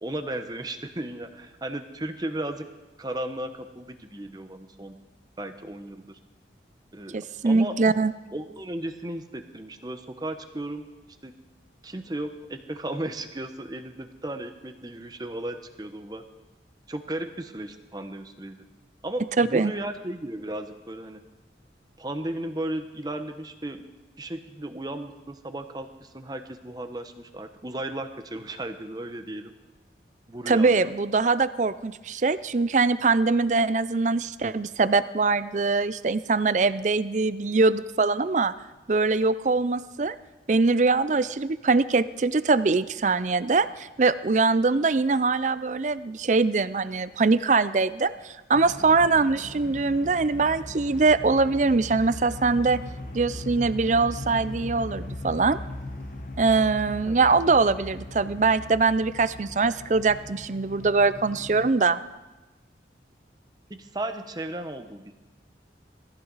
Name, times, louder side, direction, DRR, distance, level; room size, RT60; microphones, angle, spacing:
voice 1, 0.0-2.7 3.0-4.9 5.4-6.2 6.9-7.8 8.3-10.8 11.2-11.3 11.8-16.2 16.9-18.6 19.0-21.2 22.0-23.8 24.2-29.5 30.3-30.9 57.0-57.2 63.7-65.1, right 1 dB, 20° right, 7 dB, 0.9 m, -35 dB
voice 2, 7.1-8.1 19.4-19.7 30.5-38.5 38.9-40.2 40.5-52.8 53.1-55.6 56.4-62.0, right 4 dB, 40° right, 15 dB, 0.5 m, -23 dB
sound 1, 48.5-61.7, left 1 dB, 45° left, 1.1 m, -39 dB
20.0 x 14.5 x 4.1 m, 1.1 s
head